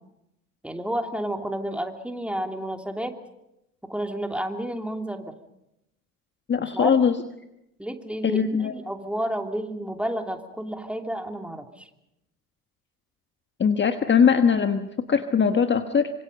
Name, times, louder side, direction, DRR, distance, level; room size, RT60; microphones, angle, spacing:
voice 1, 0.6-3.1 3.8-5.2 6.6-6.9 7.8-11.9, right 1 dB, 5° right, 4 dB, 2.9 m, -31 dB
voice 2, 6.5-7.2 8.2-8.7 13.6-16.1, left 6 dB, 25° left, 8 dB, 1.3 m, -21 dB
26.0 x 25.5 x 5.3 m, 0.86 s
figure-of-eight pair, 65°, 44 cm